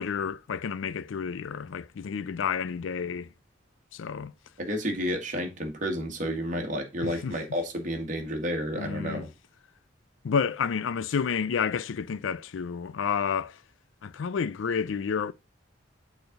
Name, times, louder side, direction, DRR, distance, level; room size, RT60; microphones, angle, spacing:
voice 1, 0.0-3.3 3.9-4.3 7.0-7.4 8.7-9.3 10.2-13.6 14.0-15.3, left 6 dB, 85° left, 0.4 m, -30 dB
voice 2, 4.6-9.3, equal, 40° right, 1.8 m, -31 dB
6.8 x 4.2 x 5.1 m
head